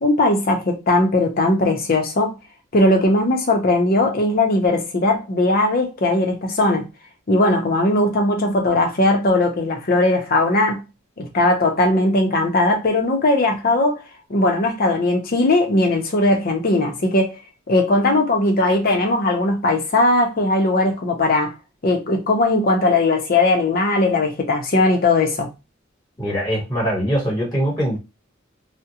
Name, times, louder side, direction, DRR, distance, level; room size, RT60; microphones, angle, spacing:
voice 1, 0.0-2.3 2.7-6.9 7.3-10.8 11.2-14.0 14.3-17.4 17.7-21.5 21.8-25.5, left 2 dB, 45° left, 0.6 m, -18 dB
voice 2, 26.2-28.0, equal, 20° left, 1.3 m, -22 dB
2.4 x 2.1 x 2.8 m
head